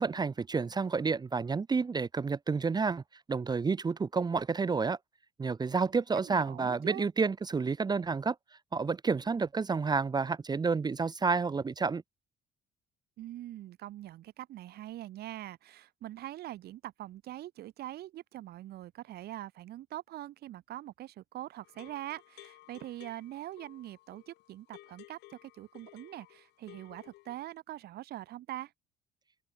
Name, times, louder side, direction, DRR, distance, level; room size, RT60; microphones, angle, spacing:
voice 1, 0.0-3.0 3.3-5.0 5.4-8.3 8.7-12.0, right 4 dB, 25° right, 1.0 m, -30 dB
voice 2, 6.2-7.1 13.2-28.7, right 14 dB, 70° right, 2.7 m, -43 dB
sound 1, 21.6-27.6, left 19 dB, 85° left, 2.5 m, -56 dB
open air
cardioid pair, 110°, 17 cm